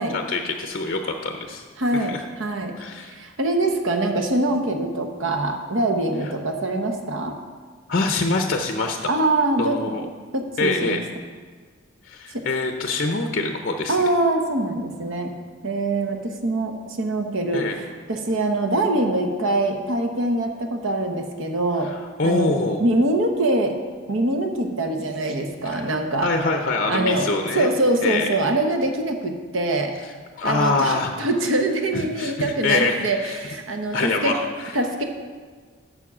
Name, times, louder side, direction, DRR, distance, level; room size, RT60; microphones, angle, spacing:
voice 1, 0.1-1.6 1.9-2.2 2.8-3.2 7.9-9.1 9.6-10.1 10.6-11.0 12.1-14.0 17.5-17.8 21.8-22.8 25.6-27.7 28.0-28.3 30.4-31.1 31.9-33.4 33.9-34.7, left 3 dB, 40° left, 4 dB, 0.5 m, -25 dB
voice 2, 1.8-2.7 3.0-7.4 9.0-9.8 10.3-11.0 12.3-12.4 13.9-15.3 15.6-21.9 22.2-22.5 22.8-23.7 24.1-26.3 26.9-29.9 30.4-34.3 34.7-35.0, right 2 dB, 70° right, 4 dB, 1.0 m, -24 dB
7.3 x 6.8 x 6.0 m, 1.5 s
head